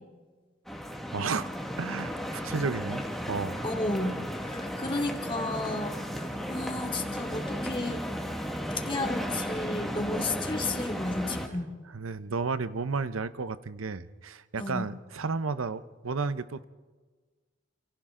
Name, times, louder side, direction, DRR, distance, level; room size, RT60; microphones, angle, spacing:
sound 1, 0.7-11.5, equal, ahead, 1.8 m, -34 dB
voice 1, 1.1-1.5 1.8-3.6 11.9-16.6, right 4 dB, 85° right, 13 dB, 0.8 m, -32 dB
voice 2, 3.6-4.1 4.4-8.0 8.8-11.7 14.6-14.8, left 2 dB, 25° left, 1 dB, 2.5 m, -33 dB
29.0 x 28.5 x 3.8 m, 1.4 s
head